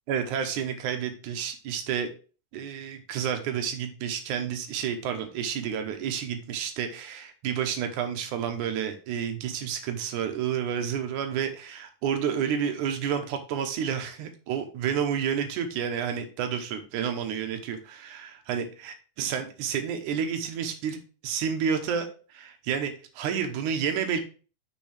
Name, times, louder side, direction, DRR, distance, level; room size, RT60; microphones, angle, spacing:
voice 1, 0.1-2.1 2.5-24.2, right 8 dB, 75° right, 7 dB, 2.3 m, -30 dB
6.4 x 6.0 x 3.3 m, 0.35 s
omnidirectional pair, 3.8 m